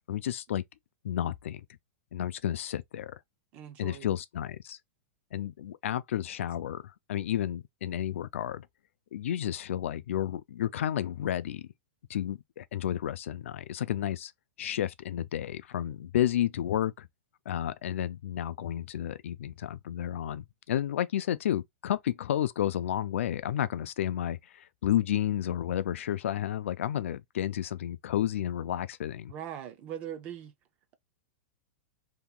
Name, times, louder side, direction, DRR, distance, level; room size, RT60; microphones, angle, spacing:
voice 1, 0.1-0.6 1.0-1.7 2.1-3.1 3.8-4.8 5.3-6.8 7.1-8.7 9.1-11.7 12.1-14.3 14.6-17.1 17.5-29.3, left 11 dB, 80° left, 0.4 m, -31 dB
voice 2, 3.5-4.2 29.3-30.5, right 10 dB, 20° right, 0.4 m, -40 dB
2.8 x 2.3 x 3.6 m
supercardioid pair, 180°, 7 cm